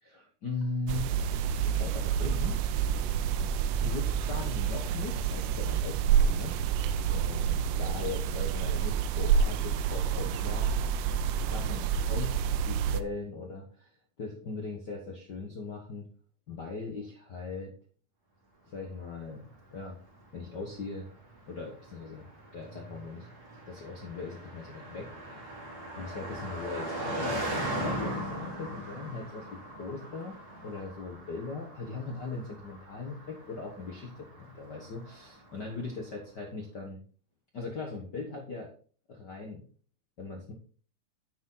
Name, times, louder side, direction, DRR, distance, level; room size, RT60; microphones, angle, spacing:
voice 1, 0.0-1.1 1.6-2.6 3.8-10.7 11.4-16.1 16.5-17.7 18.7-19.5 19.7-20.0 20.3-21.1 21.5-23.3 23.7-25.5 25.9-30.4 30.6-37.0 37.5-38.7 39.1-39.6 40.2-40.5, left 3 dB, 80° left, 1 dB, 0.9 m, -39 dB
sound 1, 0.9-13.0, right 7 dB, 80° right, 2.1 m, -28 dB
Car passing by, 19.3-35.7, right 1 dB, 30° right, 3.1 m, -40 dB
9.8 x 7.2 x 3.9 m, 0.42 s
omnidirectional pair, 4.0 m